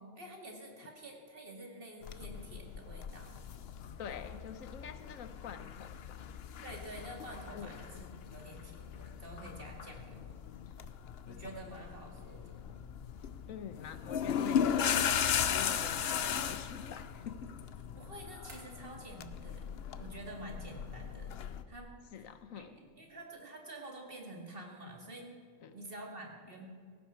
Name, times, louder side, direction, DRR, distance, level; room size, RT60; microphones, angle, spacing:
voice 1, 0.0-3.5 6.6-10.2 11.3-12.8 18.0-21.4 21.7-21.9 22.5-25.4 25.7-26.7, right 1 dB, 40° right, 1 dB, 2.3 m, -48 dB
sound 1, 2.0-21.6, left 8 dB, 55° left, 0.8 m, -37 dB
voice 2, 4.0-6.3 7.5-7.8 13.5-17.5 18.0-18.1 22.1-22.8 25.6-25.8, left 7 dB, 75° left, 11 dB, 1.2 m, -46 dB
sound 2, 16.3-17.1 18.5-19.0, right 1 dB, 70° right, 3.2 m, -56 dB
17.5 x 15.0 x 4.4 m, 2.1 s
omnidirectional pair, 1.4 m